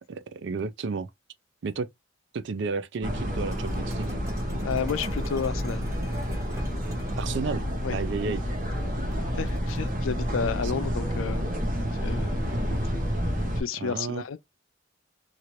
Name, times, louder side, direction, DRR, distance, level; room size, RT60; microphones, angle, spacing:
voice 1, 0.1-1.1 1.6-1.9 2.3-4.2 7.1-7.6 7.9-8.4 13.8-14.2, right 4 dB, 60° right, 0.4 m, -32 dB
sound 1, 3.0-13.6, equal, 45° right, 0.8 m, -29 dB
sound 2, 3.3-7.5 9.1-9.9, equal, 15° right, 0.9 m, -43 dB
voice 2, 4.6-5.8 7.8-8.0 9.3-11.5 12.0-12.5 13.6-14.4, left 6 dB, 80° left, 0.4 m, -31 dB
3.0 x 2.5 x 3.0 m
head